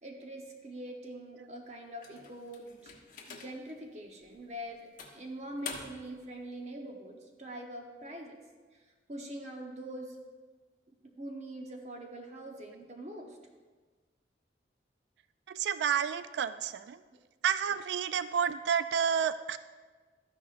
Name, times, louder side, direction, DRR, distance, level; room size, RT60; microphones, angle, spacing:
voice 1, 0.0-2.9 3.3-8.4 9.1-10.2 11.0-13.4 17.1-17.2, right 1 dB, 40° right, 2 dB, 1.0 m, -43 dB
sound 1, 2.0-3.7 4.3-4.4 5.0-6.2, left 5 dB, 45° left, 1.1 m, -46 dB
voice 2, 15.5-17.0 17.4-19.6, right 7 dB, 75° right, 13 dB, 0.3 m, -30 dB
13.0 x 10.5 x 2.5 m, 1.4 s
head